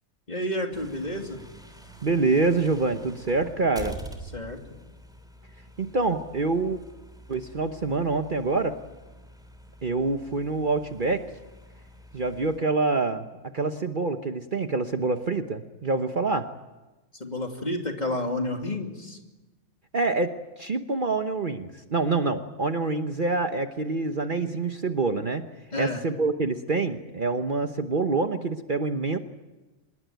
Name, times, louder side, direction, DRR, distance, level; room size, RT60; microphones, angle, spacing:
voice 1, 0.3-1.4 4.3-4.6 17.2-19.2 25.7-26.0, left 1 dB, 35° left, 3 dB, 2.9 m, -30 dB
sound 1, 0.7-12.6, right 1 dB, 5° right, 3.3 m, -46 dB
voice 2, 2.0-4.0 5.8-6.8 7.3-8.8 9.8-11.2 12.1-13.3 13.5-16.5 19.9-20.3 20.6-25.4 25.8-29.2, right 3 dB, 45° right, 7 dB, 1.1 m, -26 dB
25.5 x 21.0 x 9.3 m, 1.1 s
omnidirectional pair, 1.3 m